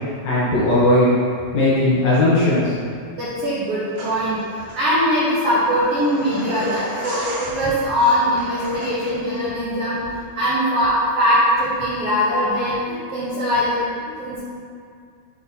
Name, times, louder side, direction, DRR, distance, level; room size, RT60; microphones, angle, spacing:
voice 1, 0.2-1.1 1.5-2.7, left 1 dB, 70° left, -9 dB, 1.8 m, -17 dB
voice 2, 3.2-10.0 10.4-14.4, equal, 80° right, -9 dB, 1.3 m, -21 dB
sound 1, 3.9-9.4, right 1 dB, 55° right, 1.8 m, -35 dB
9.7 x 4.1 x 2.7 m, 2.2 s
omnidirectional pair, 4.3 m